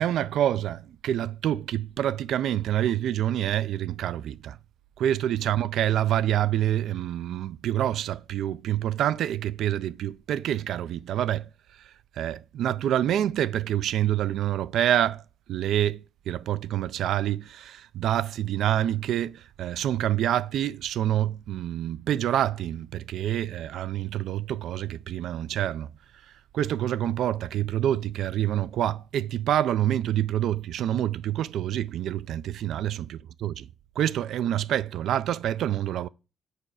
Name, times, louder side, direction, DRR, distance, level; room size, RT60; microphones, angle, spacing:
voice 1, 0.0-4.6 5.0-11.5 11.8-15.2 15.5-25.9 26.5-33.7 34.0-36.1, right 11 dB, 75° right, 0.4 m, -27 dB
9.0 x 4.8 x 4.8 m
cardioid pair, 90°, 0 cm